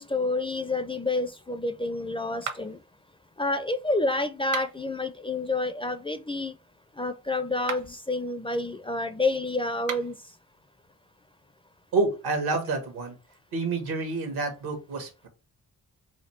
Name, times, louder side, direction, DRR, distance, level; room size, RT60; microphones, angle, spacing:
voice 1, 0.0-2.8 3.4-6.5 7.0-10.1, left 2 dB, 15° left, 0.4 m, -29 dB
sound 1, 2.4-2.9 4.4-5.0 7.5-8.0 9.8-10.2, right 6 dB, 55° right, 0.9 m, -37 dB
voice 2, 11.9-13.2 13.5-15.3, right 3 dB, 80° right, 1.3 m, -28 dB
4.3 x 2.3 x 3.1 m
supercardioid pair, 55°, 37 cm